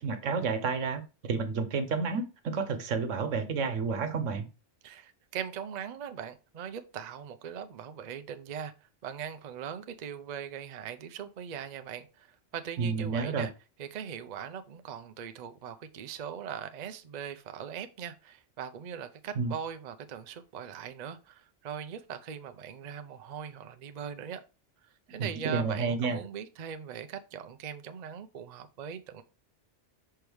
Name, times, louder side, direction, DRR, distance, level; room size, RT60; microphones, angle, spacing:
voice 1, 0.0-4.4 12.8-13.5 19.4-19.5 25.1-26.2, right 5 dB, 85° right, 1.3 m, -30 dB
voice 2, 4.8-13.5 13.8-24.4 25.1-29.2, right 8 dB, 50° right, 0.5 m, -40 dB
6.2 x 4.4 x 3.4 m
omnidirectional pair, 1.3 m